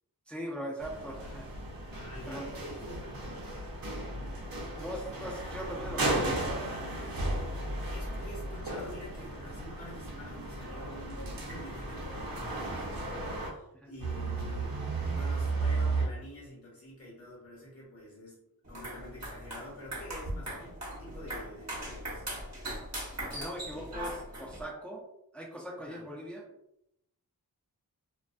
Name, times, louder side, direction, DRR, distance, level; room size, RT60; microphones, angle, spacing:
voice 1, 0.3-1.4 2.3-2.5 4.8-6.7 13.7-13.9 23.3-25.0 25.3-26.4, equal, 5° left, -3 dB, 0.6 m, -40 dB
sound 1, 0.8-13.5 14.0-16.1, right 2 dB, 65° right, 0.7 m, -35 dB
voice 2, 1.9-3.2 7.9-14.7 15.0-22.2 25.8-26.0, equal, 40° left, -5 dB, 1.0 m, -48 dB
sound 2, 18.6-24.6, right 1 dB, 45° right, 1.0 m, -40 dB
2.3 x 2.2 x 2.5 m, 0.81 s
wide cardioid pair, 55°, 37 cm